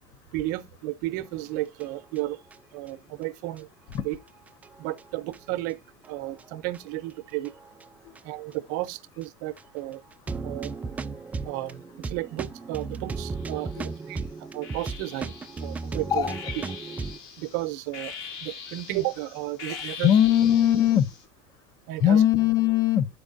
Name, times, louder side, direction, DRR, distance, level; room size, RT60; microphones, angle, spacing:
voice 1, 0.3-2.4 2.7-3.7 4.0-4.2 4.8-5.8 6.1-7.5 8.2-10.0 10.4-10.7 11.4-14.2 14.5-15.3 15.6-16.3 17.4-18.1 18.4-20.1 21.9-22.2, right 17 dB, 75° right, 0.7 m, -33 dB
sound 1, 1.8-2.5 2.9-3.0 3.6-3.7 3.9-4.0 4.5-5.4 6.0-6.4 6.7-6.8 7.4-7.9 8.1-8.2 8.5-8.6 9.2-9.3 9.6-9.7 10.1-17.2, right 4 dB, 15° right, 0.3 m, -35 dB
sound 2, 13.2-14.0 14.6-21.2, left 6 dB, 60° left, 2.1 m, -42 dB
voice 2, 19.7-21.1 22.0-23.1, left 10 dB, 40° left, 0.6 m, -21 dB
12.0 x 4.7 x 2.4 m
supercardioid pair, 135°, 10 cm